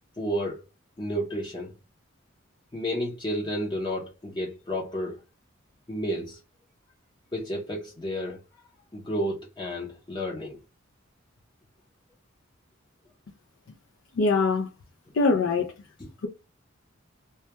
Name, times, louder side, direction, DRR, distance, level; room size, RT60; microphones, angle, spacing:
voice 1, 0.2-0.6 1.0-1.7 2.7-5.2 5.9-6.4 7.3-8.4 8.9-10.6, equal, 20° left, 0.5 m, -31 dB
voice 2, 14.2-14.7 15.1-15.7, left 3 dB, 70° left, 0.4 m, -22 dB
2.2 x 2.1 x 2.8 m
head